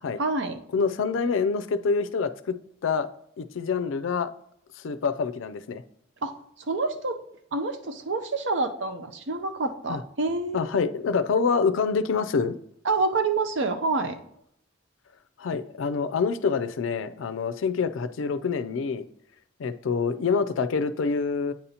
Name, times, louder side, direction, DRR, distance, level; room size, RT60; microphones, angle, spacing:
voice 1, 0.2-0.6 6.2-7.2 7.5-10.7 12.8-14.2, right 3 dB, 65° right, 8 dB, 0.6 m, -27 dB
voice 2, 0.7-2.6 2.8-3.1 3.4-4.3 4.8-5.8 9.9-10.0 10.5-12.6 15.4-19.1 19.6-21.5, left 5 dB, 90° left, 12 dB, 0.4 m, -26 dB
8.9 x 5.4 x 2.8 m, 0.73 s
head